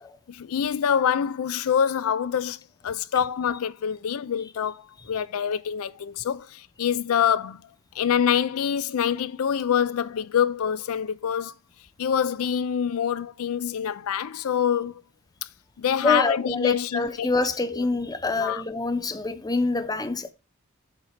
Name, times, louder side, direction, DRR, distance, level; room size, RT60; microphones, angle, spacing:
voice 1, 0.3-7.6 7.9-11.5 12.0-15.0 15.4-15.5 15.8-17.3 17.7-17.9 18.4-18.6, left 8 dB, 75° left, 0.4 m, -25 dB
voice 2, 16.0-20.3, left 3 dB, 20° left, 0.7 m, -26 dB
8.1 x 4.0 x 5.8 m
head